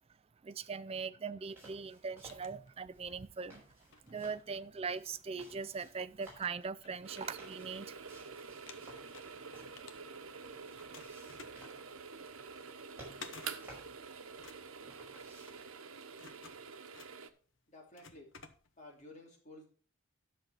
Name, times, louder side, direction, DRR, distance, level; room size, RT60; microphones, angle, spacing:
voice 1, 0.4-3.6 4.1-8.0 8.8-9.2 10.6-10.8, right 5 dB, 30° right, 0.4 m, -41 dB
sound 1, 1.4-15.7, right 1 dB, 10° right, 5.4 m, -59 dB
sound 2, 1.9-3.2 3.7-5.4 5.9-6.0 6.3-8.2 8.5-10.4 10.8-19.0, left 5 dB, 60° left, 1.0 m, -56 dB
sound 3, 7.0-17.3, right 5 dB, 85° right, 1.0 m, -48 dB
voice 2, 17.7-18.3 18.8-19.7, left 2 dB, 35° left, 3.1 m, -53 dB
10.0 x 6.5 x 5.6 m
head